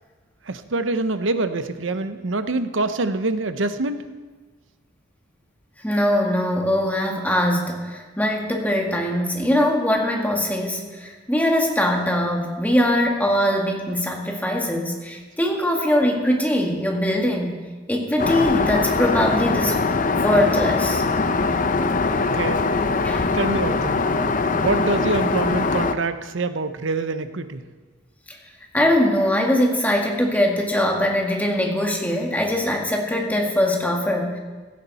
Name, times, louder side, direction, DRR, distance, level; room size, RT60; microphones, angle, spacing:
voice 1, 0.5-4.0 22.2-22.6 23.3-24.1 24.5-27.6, right 3 dB, 85° right, 10 dB, 0.9 m, -25 dB
voice 2, 5.8-17.5 17.9-21.0 23.0-23.3 28.7-34.4, left 1 dB, 10° left, 0 dB, 2.0 m, -22 dB
Aircraft, 18.2-25.9, left 4 dB, 45° left, 0.7 m, -22 dB
16.0 x 14.0 x 4.2 m, 1.4 s
head